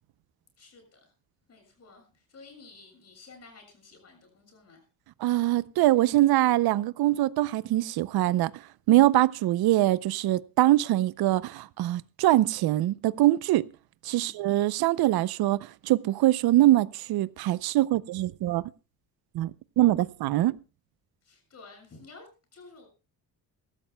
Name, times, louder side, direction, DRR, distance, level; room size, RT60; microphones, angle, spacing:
voice 1, 0.6-1.1 1.5-4.8 14.2-14.4 21.2-22.9, left 3 dB, 40° left, 6.9 m, -52 dB
voice 2, 5.2-13.7 14.0-18.7 19.3-19.5 19.8-20.6, right 15 dB, 80° right, 0.6 m, -23 dB
23.5 x 13.5 x 2.2 m
cardioid pair, 140°, 37 cm